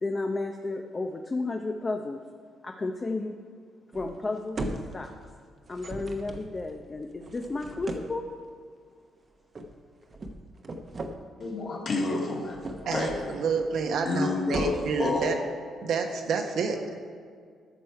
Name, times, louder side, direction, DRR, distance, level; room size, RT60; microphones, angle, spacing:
voice 1, 0.0-2.2 2.6-3.4 3.9-5.1 5.7-8.3, left 3 dB, 30° left, 4 dB, 0.6 m, -32 dB
sound 1, 3.9-4.3 4.6-5.3 5.6-8.3 9.6-9.8 10.1-11.2 12.3-13.3 13.6-14.1 14.4-15.1, right 2 dB, 40° right, 0.9 m, -38 dB
voice 2, 11.4-13.5 14.1-15.3, left 3 dB, 50° left, -1 dB, 2.1 m, -30 dB
voice 3, 12.9-15.4 15.8-17.0, right 5 dB, 70° right, 4 dB, 1.1 m, -29 dB
13.0 x 6.2 x 4.7 m, 2.1 s
cardioid pair, 90°, 0 cm